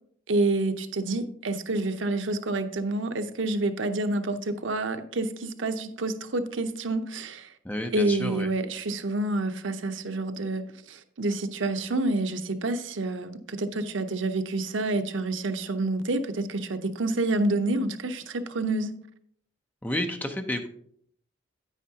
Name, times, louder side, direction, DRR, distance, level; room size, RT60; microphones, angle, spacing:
voice 1, 0.3-7.5 7.9-10.6 10.9-18.9, right 2 dB, 85° right, 0.7 m, -28 dB
voice 2, 7.6-8.5 19.8-20.7, left 1 dB, 10° left, 0.6 m, -30 dB
9.5 x 9.2 x 2.8 m
head